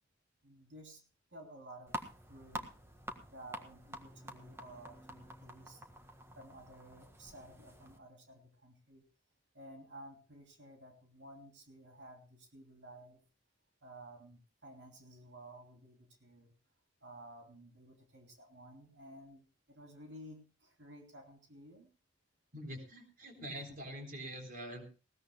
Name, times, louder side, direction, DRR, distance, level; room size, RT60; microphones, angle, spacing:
voice 1, 0.4-1.0 1.3-2.0 2.3-2.7 3.3-5.8 6.3-9.0 9.5-13.2 13.8-16.5 17.0-19.4 19.7-21.9 23.5-23.8, right 1 dB, 70° right, 2 dB, 3.1 m, -54 dB
sound 1, 1.9-8.0, right 1 dB, 15° right, 1.6 m, -48 dB
voice 2, 22.5-24.9, equal, 45° right, 4 dB, 3.9 m, -45 dB
20.5 x 17.0 x 2.2 m, 0.33 s
head